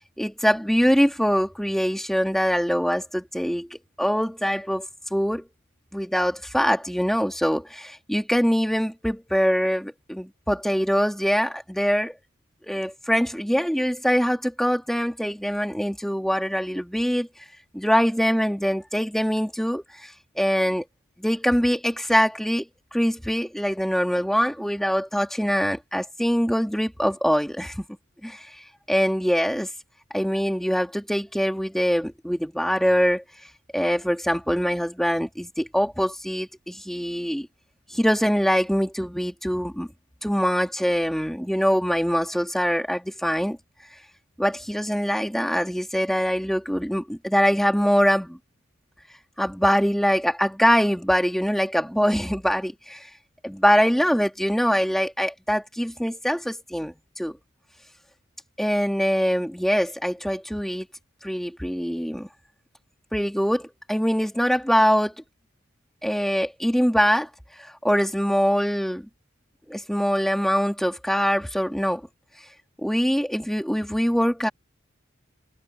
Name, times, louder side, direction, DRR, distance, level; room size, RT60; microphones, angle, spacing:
voice 1, 0.2-4.9 5.1-5.4 5.9-12.2 12.6-17.3 17.7-20.8 21.2-22.7 22.9-27.8 28.2-28.5 28.9-29.7 30.1-33.2 33.7-37.5 37.9-39.9 40.2-43.6 44.4-48.4 49.4-53.1 53.4-57.4 58.6-60.9 61.2-62.3 63.1-65.1 66.0-67.3 67.6-69.1 69.7-72.0 72.8-74.5, equal, ahead, 2.5 m, -23 dB
head